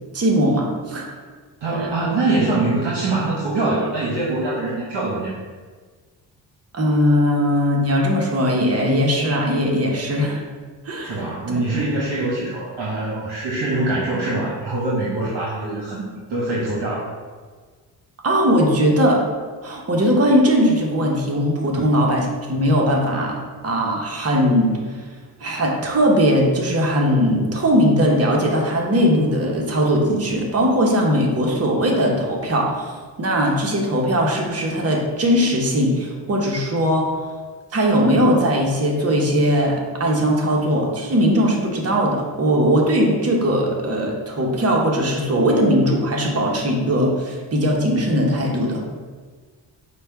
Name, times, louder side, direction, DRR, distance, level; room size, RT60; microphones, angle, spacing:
voice 1, 0.1-1.1 1.8-1.9 6.7-10.4 10.9-11.6 18.2-19.2 19.6-23.4 23.6-24.7 25.4-32.9 33.2-37.2 37.7-48.8, equal, 35° right, -1 dB, 0.9 m, -19 dB
voice 2, 1.6-5.3 11.0-17.1 21.8-21.9, right 2 dB, 65° right, -6 dB, 1.0 m, -23 dB
4.9 x 2.3 x 4.5 m, 1.5 s
cardioid pair, 65°, 44 cm